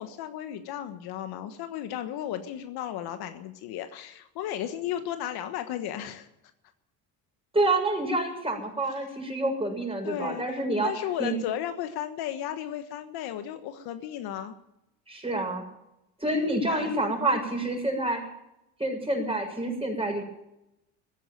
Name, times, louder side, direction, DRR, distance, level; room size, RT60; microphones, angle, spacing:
voice 1, 0.0-6.3 10.0-14.6 16.7-17.0, left 11 dB, 75° left, 8 dB, 1.4 m, -34 dB
voice 2, 7.5-10.9 11.2-11.4 15.1-15.6 16.2-18.2 18.8-20.2, right 2 dB, 15° right, 1 dB, 6.9 m, -27 dB
15.0 x 10.5 x 9.1 m, 0.86 s
supercardioid pair, 85°, 38 cm